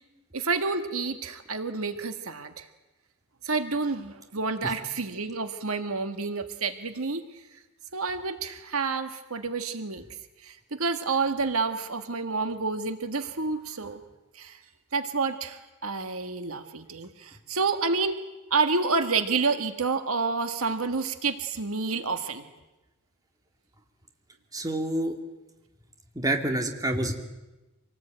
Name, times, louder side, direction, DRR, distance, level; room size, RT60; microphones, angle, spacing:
voice 1, 0.3-2.7 3.4-7.2 7.9-10.0 10.4-14.0 14.3-14.6 14.9-18.2 18.5-22.5, right 4 dB, 70° right, 8 dB, 1.6 m, -29 dB
voice 2, 24.5-25.1 26.1-27.1, right 1 dB, 15° right, 4 dB, 2.4 m, -27 dB
26.5 x 19.0 x 9.0 m, 1.1 s
head